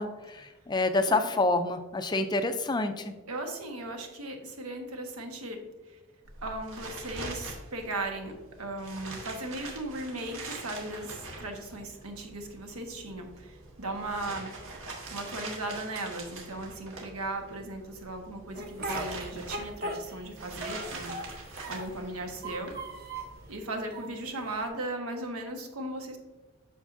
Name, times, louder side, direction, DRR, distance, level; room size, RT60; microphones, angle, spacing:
voice 1, 0.0-3.1, left 2 dB, 20° left, 8 dB, 0.3 m, -28 dB
voice 2, 3.3-5.6 5.9-6.0 6.4-14.8 15.1-21.2 21.7-22.7 23.5-26.2, right 2 dB, 90° right, 3 dB, 1.3 m, -37 dB
sound 1, 6.2-23.5, right 2 dB, 70° right, 1.5 m, -44 dB
Speech, 18.6-20.3 20.6-22.0 22.4-23.4 23.9-24.7, right 1 dB, 45° right, 1.2 m, -38 dB
8.3 x 6.3 x 2.6 m, 1.2 s
head